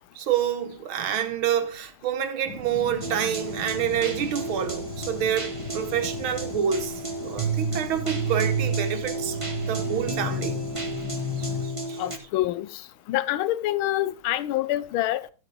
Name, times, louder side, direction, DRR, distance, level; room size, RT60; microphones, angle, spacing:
voice 1, 0.2-6.9 7.2-9.4 9.7-10.6 11.4-12.0, right 9 dB, 70° right, 1.9 m, -28 dB
sound 1, 2.5-11.6, left 5 dB, 50° left, 2.0 m, -40 dB
sound 2, 3.0-12.2, right 3 dB, 20° right, 1.0 m, -31 dB
voice 2, 12.0-12.8 13.1-15.3, left 14 dB, 75° left, 1.5 m, -26 dB
13.0 x 8.7 x 3.3 m
omnidirectional pair, 2.4 m